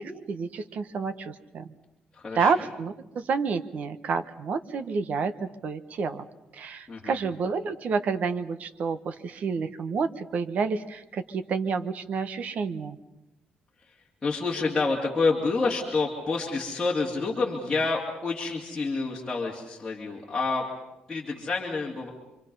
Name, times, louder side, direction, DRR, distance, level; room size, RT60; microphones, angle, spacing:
voice 1, 0.0-1.7 2.3-6.2 6.5-13.0, right 5 dB, 50° right, 9 dB, 1.2 m, -29 dB
voice 2, 2.1-2.5 6.9-7.2 14.2-20.7 21.1-22.1, left 3 dB, 15° left, -5 dB, 2.8 m, -28 dB
27.5 x 25.0 x 5.5 m, 0.93 s
cardioid pair, 155°, 3 cm